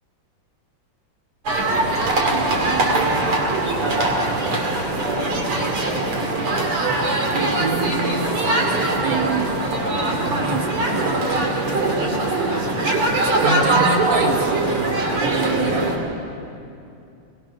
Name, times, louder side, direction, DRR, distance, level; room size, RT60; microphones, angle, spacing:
sound 1, 1.5-16.0, right 2 dB, 85° right, 3.3 m, -21 dB
voice 1, 2.2-3.2 7.3-8.3 9.0-9.6 9.9-12.1 13.4-15.9, right 4 dB, 60° right, 2 dB, 2.1 m, -28 dB
22.0 x 20.0 x 6.0 m, 2.6 s
omnidirectional pair, 2.4 m